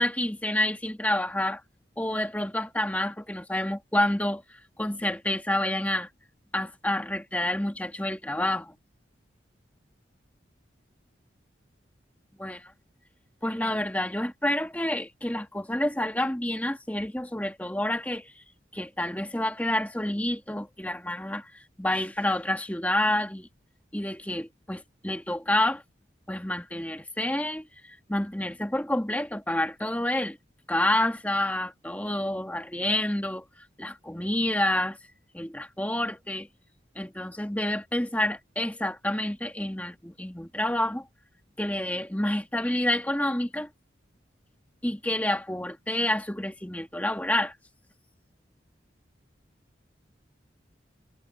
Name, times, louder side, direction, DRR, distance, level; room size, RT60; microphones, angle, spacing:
voice 1, 0.0-1.6 2.0-6.1 6.5-8.7 12.4-12.6 13.4-18.3 18.7-21.5 21.8-23.5 23.9-25.8 26.3-30.4 30.7-33.4 33.8-35.0 35.3-36.5 36.9-41.0 41.6-43.7 44.8-47.5, left 1 dB, 10° left, 1.7 m, -28 dB
head